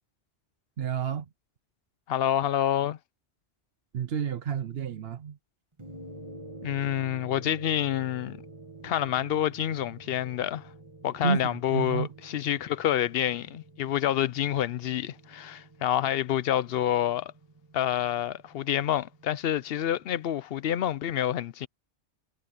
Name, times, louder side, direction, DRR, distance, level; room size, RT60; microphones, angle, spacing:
voice 1, 0.8-1.3 3.9-5.4 11.2-12.1, right 7 dB, 65° right, 1.0 m, -30 dB
voice 2, 2.1-3.0 6.6-8.4 8.8-10.7 11.0-17.3 17.7-21.7, left 11 dB, 65° left, 0.7 m, -28 dB
sound 1, 5.8-20.3, right 2 dB, 25° right, 1.7 m, -49 dB
omnidirectional pair, 1.2 m